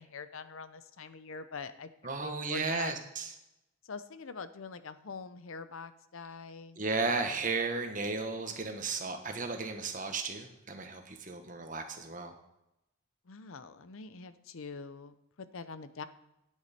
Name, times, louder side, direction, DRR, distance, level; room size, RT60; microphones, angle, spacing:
voice 1, 0.0-1.9 2.2-2.9 3.8-7.4 13.3-16.0, left 4 dB, 75° left, 12 dB, 0.7 m, -44 dB
voice 2, 2.0-3.3 6.8-12.3, right 4 dB, 40° right, 5 dB, 1.2 m, -34 dB
9.6 x 8.5 x 4.3 m, 0.87 s
head